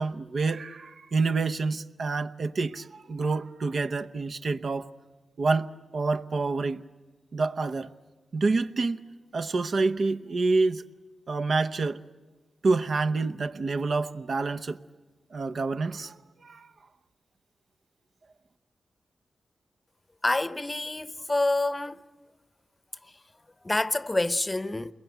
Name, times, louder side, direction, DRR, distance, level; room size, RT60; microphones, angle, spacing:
voice 1, 0.0-4.9 5.4-6.8 7.3-7.9 8.3-9.0 9.3-10.8 11.3-12.0 12.6-14.8 15.3-16.2 16.4-16.7, right 3 dB, 60° right, 0.9 m, -27 dB
voice 2, 20.2-22.0 23.6-24.9, left 2 dB, 25° left, 0.8 m, -27 dB
28.0 x 22.0 x 9.3 m
cardioid pair, 60°, 0 cm